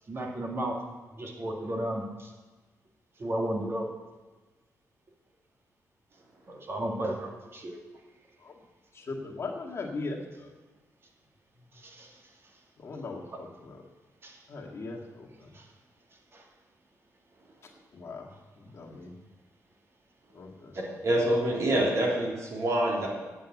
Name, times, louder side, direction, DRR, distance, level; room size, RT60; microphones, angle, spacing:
voice 1, 0.1-0.8 1.2-2.3 3.2-3.9 6.5-7.8 11.8-12.1 14.2-14.4, right 1 dB, 45° right, 1 dB, 2.1 m, -33 dB
voice 2, 8.9-10.5 12.8-13.8 14.5-15.5 17.9-19.1 20.3-20.8, left 3 dB, 50° left, -1 dB, 1.8 m, -39 dB
voice 3, 20.8-23.1, right 1 dB, 60° right, -3 dB, 3.5 m, -26 dB
8.6 x 7.4 x 8.3 m, 1.2 s
cardioid pair, 90°, 6 cm